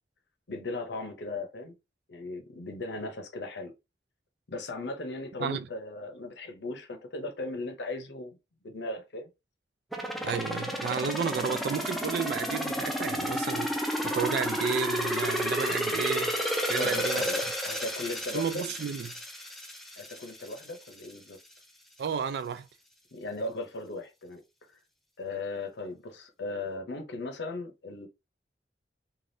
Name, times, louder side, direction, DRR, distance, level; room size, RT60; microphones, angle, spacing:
voice 1, 0.5-1.7 2.1-3.7 4.5-8.4 8.6-9.3 16.8-18.6 20.0-21.4 23.1-24.4 25.2-28.1, left 2 dB, 85° left, 0.7 m, -37 dB
sound 1, 9.9-20.7 21.0-21.1, equal, ahead, 0.4 m, -31 dB
voice 2, 10.2-16.4 16.7-17.3 18.3-19.1 22.0-22.7, right 6 dB, 70° right, 0.3 m, -32 dB
3.3 x 2.3 x 2.6 m
head